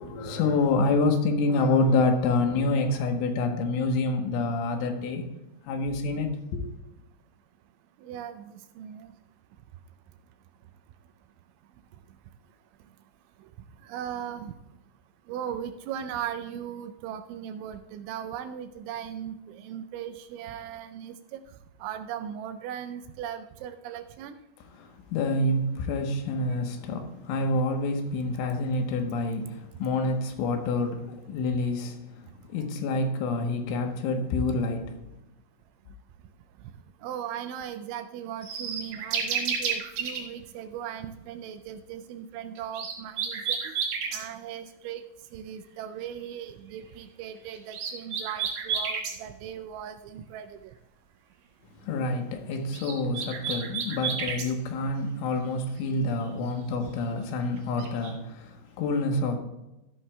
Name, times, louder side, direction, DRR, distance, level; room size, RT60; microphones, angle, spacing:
voice 1, 0.0-5.4 5.7-6.7 24.8-35.0 51.8-59.4, left 2 dB, 80° left, 3.5 m, -27 dB
voice 2, 8.0-9.1 13.9-14.5 15.3-21.4 21.8-24.4 37.0-43.8 44.1-45.0 45.3-50.7, right 9 dB, 85° right, 2.8 m, -38 dB
sound 1, 38.4-40.2 42.6-44.2 47.5-49.2 52.5-54.5 57.6-58.1, right 6 dB, 70° right, 2.0 m, -31 dB
14.0 x 11.5 x 2.3 m
omnidirectional pair, 5.7 m